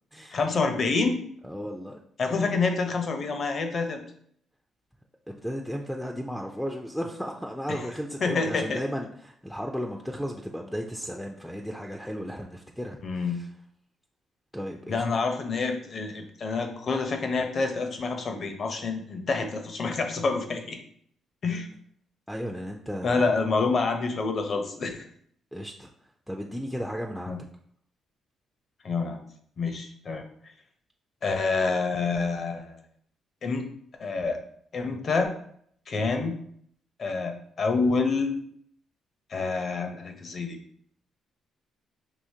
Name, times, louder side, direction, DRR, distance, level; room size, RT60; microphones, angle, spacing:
voice 1, 0.3-1.2 2.2-4.0 7.7-7.8 8.2-8.8 13.0-13.4 14.9-20.8 21.4-21.7 23.0-25.1 27.3-27.4 28.8-29.2 29.6-30.2 31.2-32.8 33.4-33.6 34.0-34.4 34.7-35.3 35.9-36.4 37.0-38.5 39.3-40.6, left 4 dB, 50° left, 5 dB, 0.7 m, -27 dB
voice 2, 1.4-2.0 2.3-2.6 5.3-13.5 14.5-15.0 22.3-23.3 25.5-25.9 26.3-27.4, equal, ahead, 2 dB, 0.4 m, -35 dB
4.9 x 2.8 x 2.8 m, 0.64 s
cardioid pair, 90°, 0 cm